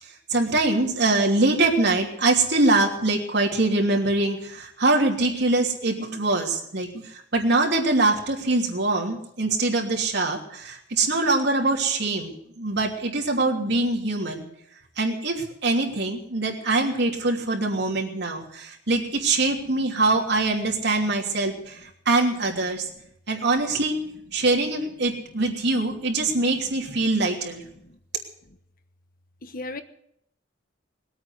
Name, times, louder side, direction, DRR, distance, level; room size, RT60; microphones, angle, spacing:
voice 1, 0.1-14.5 15.0-22.9 23.3-24.0 24.3-27.6, right 2 dB, 60° right, 0 dB, 3.0 m, -23 dB
voice 2, 20.6-21.1 26.2-26.8 27.6-28.0 28.5-28.6 29.4-29.8, left 2 dB, 50° left, 9 dB, 1.1 m, -41 dB
20.5 x 8.8 x 8.1 m, 0.75 s
head